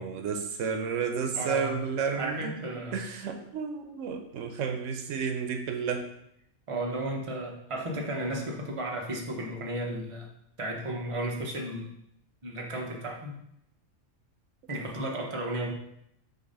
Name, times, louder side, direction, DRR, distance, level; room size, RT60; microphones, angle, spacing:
voice 1, 0.0-6.1, right 6 dB, 80° right, 5 dB, 1.0 m, -32 dB
voice 2, 1.3-1.8 2.2-3.0 6.7-10.3 10.6-11.9 12.4-13.4 14.7-15.7, right 1 dB, 30° right, 0 dB, 0.9 m, -34 dB
6.6 x 2.7 x 5.3 m, 0.75 s
omnidirectional pair, 1.3 m